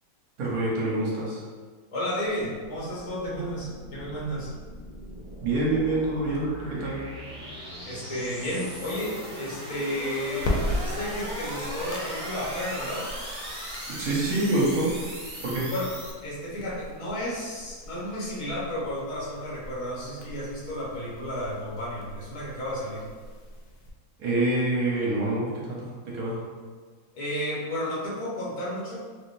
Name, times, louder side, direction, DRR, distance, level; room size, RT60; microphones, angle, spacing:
voice 1, 0.4-1.4 5.4-7.0 13.9-14.9 15.4-15.7 24.2-26.4, right 2 dB, 70° right, -4 dB, 1.3 m, -26 dB
voice 2, 1.9-4.5 7.8-13.1 15.7-15.9 16.2-23.0 27.1-29.0, equal, 30° left, -6 dB, 0.7 m, -32 dB
sound 1, 2.3-16.1, equal, 30° right, 0.8 m, -39 dB
sound 2, 10.4-23.9, left 1 dB, 70° left, 0.9 m, -38 dB
3.5 x 2.6 x 2.5 m, 1.5 s
omnidirectional pair, 1.7 m